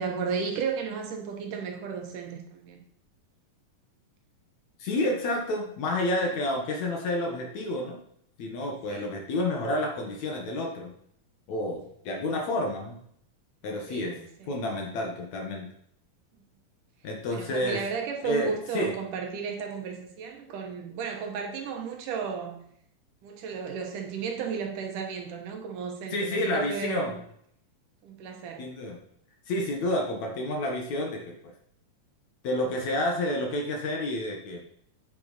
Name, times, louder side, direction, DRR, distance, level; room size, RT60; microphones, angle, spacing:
voice 1, 0.0-2.8 8.9-9.1 12.2-12.4 13.9-14.5 17.3-22.6 23.2-27.2 28.0-28.7, right 6 dB, 70° right, 3 dB, 2.4 m, -34 dB
voice 2, 4.8-8.0 8.4-10.9 11.5-13.0 13.6-14.2 14.5-15.7 17.0-17.8 18.2-18.9 26.1-27.2 28.6-29.0 29.5-31.5 32.4-34.6, left 1 dB, 60° left, 1 dB, 2.4 m, -29 dB
8.7 x 7.9 x 4.1 m, 0.68 s
omnidirectional pair, 4.1 m